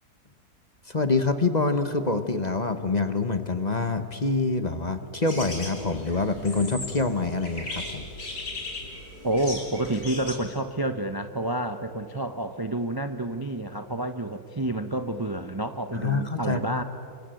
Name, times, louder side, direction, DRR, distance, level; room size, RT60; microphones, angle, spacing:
voice 1, 0.9-8.0 15.9-16.8, left 3 dB, 30° left, 9 dB, 1.2 m, -26 dB
sound 1, 5.2-10.3, left 2 dB, 80° left, 5.1 m, -38 dB
voice 2, 9.2-16.8, right 1 dB, 20° right, 8 dB, 0.7 m, -29 dB
28.5 x 25.0 x 7.8 m, 2.5 s
omnidirectional pair, 1.6 m